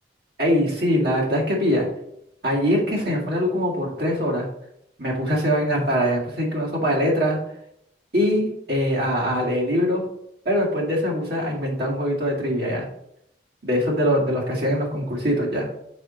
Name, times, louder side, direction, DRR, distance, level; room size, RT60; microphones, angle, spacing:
voice 1, 0.4-1.9 2.4-4.5 5.0-7.4 8.1-10.0 10.5-12.9 13.6-15.7, equal, 60° right, -4 dB, 2.0 m, -22 dB
6.2 x 4.4 x 4.0 m, 0.76 s
head